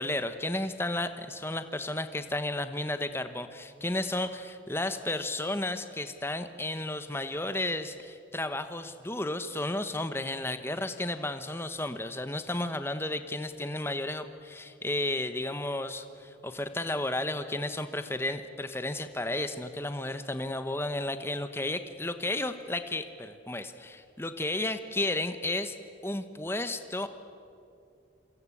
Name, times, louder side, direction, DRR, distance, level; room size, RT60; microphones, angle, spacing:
voice 1, 0.0-25.8 26.0-27.1, left 2 dB, 10° left, 10 dB, 1.1 m, -33 dB
27.5 x 25.0 x 8.5 m, 2.6 s
head